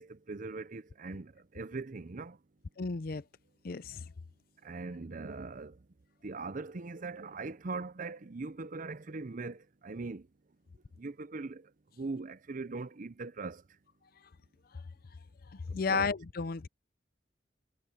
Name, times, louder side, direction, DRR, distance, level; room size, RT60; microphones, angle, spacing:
voice 1, 0.0-2.4 4.6-5.8 6.2-10.3 11.0-11.6 12.0-13.6 15.7-16.1, right 3 dB, 45° right, 0.7 m, -41 dB
voice 2, 2.8-3.2 3.6-4.0 15.5-16.7, left 4 dB, 55° left, 0.6 m, -33 dB
head